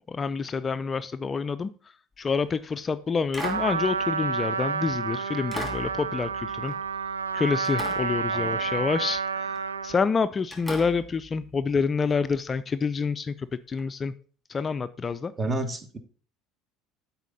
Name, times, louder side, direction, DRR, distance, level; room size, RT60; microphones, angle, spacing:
voice 1, 0.1-1.7 2.2-6.7 7.3-9.6 9.8-14.1 14.5-15.3, left 5 dB, 30° left, 13 dB, 0.4 m, -27 dB
sound 1, 2.3-2.6 3.3-4.8 5.5-7.3 7.6-8.9 9.5-9.8 10.5-12.4 13.8-13.9, left 1 dB, 5° right, 2.7 m, -40 dB
Trumpet, 3.4-10.0, right 5 dB, 85° right, 0.3 m, -29 dB
voice 2, 8.3-8.8 15.4-16.0, right 2 dB, 25° right, 9 dB, 1.1 m, -31 dB
8.1 x 4.2 x 5.1 m, 0.42 s
figure-of-eight pair, 65°, 0 cm